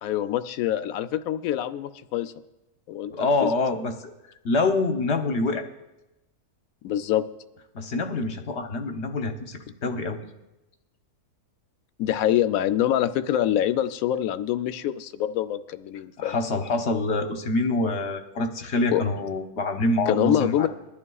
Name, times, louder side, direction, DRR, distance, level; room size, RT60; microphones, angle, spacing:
voice 1, 0.0-2.3 2.9-3.1 3.4-3.5 6.8-7.2 12.0-16.4 18.9-19.0 20.1-20.7, left 11 dB, 70° left, 11 dB, 0.9 m, -25 dB
voice 2, 3.1-3.9 4.4-5.7 7.7-10.2 16.2-20.7, left 2 dB, 50° left, 5 dB, 1.1 m, -26 dB
22.0 x 11.0 x 2.3 m, 1.0 s
omnidirectional pair, 1.7 m